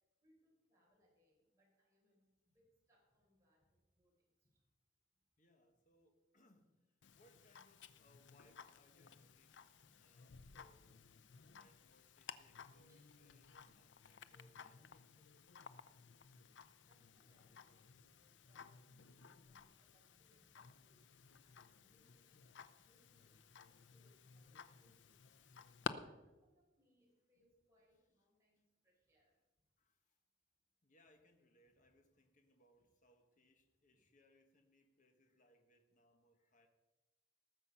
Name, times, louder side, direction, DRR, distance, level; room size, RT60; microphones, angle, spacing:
voice 1, 0.2-3.6 4.0-4.2 12.9-13.1 16.9-21.1 21.4-23.4 23.9-25.2 25.8-29.3, equal, 15° right, -4 dB, 4.7 m, -77 dB
voice 2, 5.4-9.7 10.0-15.9 29.8-30.2 30.8-36.7, left 1 dB, 45° left, 4 dB, 1.3 m, -73 dB
Tick-tock, 7.0-25.9, left 6 dB, 90° left, 0.6 m, -55 dB
19.0 x 7.1 x 5.6 m, 1.1 s
head